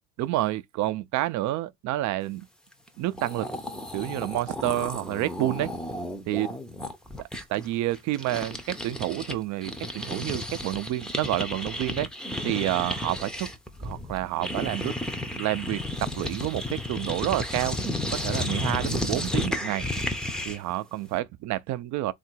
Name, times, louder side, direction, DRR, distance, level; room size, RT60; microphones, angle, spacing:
voice 1, 0.2-2.5 3.0-3.5 3.9-5.7 6.3-6.5 7.5-12.1 12.4-13.5 13.8-14.9 15.3-17.8 18.1-19.9 20.5-22.1, right 15 dB, 65° right, 0.5 m, -29 dB
sound 1, 2.9-3.0 3.1-9.4 9.6-20.7, left 1 dB, ahead, 0.5 m, -33 dB
3.8 x 2.5 x 4.5 m
cardioid pair, 155°, 31 cm